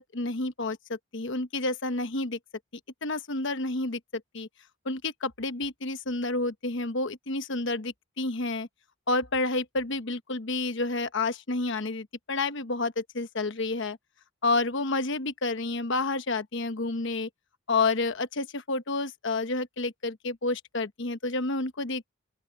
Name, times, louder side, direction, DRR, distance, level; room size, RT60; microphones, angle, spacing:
voice 1, 0.0-2.4 3.0-4.5 4.8-8.7 9.1-14.0 14.4-17.3 17.7-22.1, left 3 dB, 60° left, 1.1 m, -30 dB
open air
head